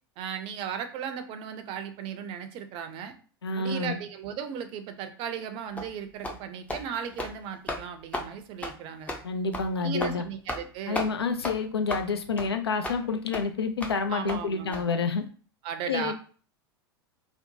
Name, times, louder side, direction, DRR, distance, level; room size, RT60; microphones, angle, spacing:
voice 1, 0.2-3.1 3.5-9.1 9.8-11.1 14.1-14.8 15.6-16.1, right 8 dB, 40° right, 8 dB, 0.5 m, -36 dB
voice 2, 3.4-4.0 9.2-10.2 10.9-15.2 15.9-16.1, left 4 dB, 85° left, 6 dB, 0.4 m, -28 dB
sound 1, 5.8-5.9 6.2-6.4 6.7-6.8 7.1-7.3 7.7-7.8 8.1-8.3 8.6-8.7 9.1-9.2 9.5-9.7 10.0-10.1 10.5-10.7 10.9-11.1 11.4-11.6 11.9-12.1 12.4-12.5 12.8-13.0 13.3-13.4 13.8-14.0 14.3-14.4 14.7-14.8, left 1 dB, 10° left, 0.5 m, -33 dB
2.8 x 2.0 x 2.7 m, 0.40 s
figure-of-eight pair, 85°, 13 cm